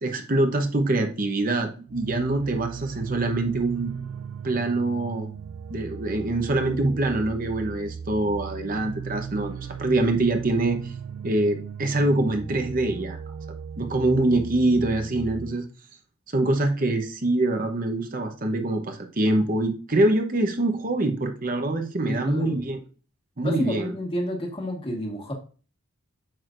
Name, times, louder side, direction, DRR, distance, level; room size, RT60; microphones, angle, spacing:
voice 1, 0.0-3.9 4.4-5.3 5.7-10.9 11.2-13.2 13.8-15.7 16.3-22.8 23.4-23.9, right 2 dB, 40° right, 5 dB, 0.9 m, -24 dB
sound 1, 1.9-15.6, right 6 dB, 75° right, 0.4 m, -37 dB
voice 2, 22.0-22.6 23.4-25.3, equal, 25° left, 2 dB, 1.6 m, -30 dB
8.8 x 6.4 x 2.5 m, 0.37 s
head